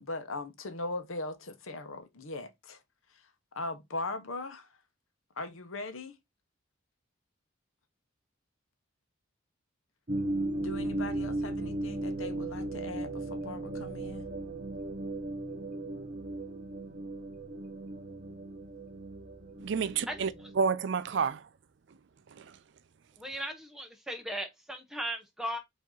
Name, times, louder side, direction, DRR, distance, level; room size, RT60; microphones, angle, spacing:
voice 1, 0.0-2.8 3.5-4.7 5.4-6.2 10.6-14.3, left 2 dB, 80° left, 0.9 m, -39 dB
sound 1, 10.1-20.7, right 2 dB, 35° right, 0.8 m, -36 dB
voice 2, 19.6-21.5 21.9-22.0 22.3-22.6, right 6 dB, 60° right, 0.4 m, -30 dB
voice 3, 23.2-25.6, equal, ahead, 0.7 m, -37 dB
5.0 x 2.8 x 3.8 m
head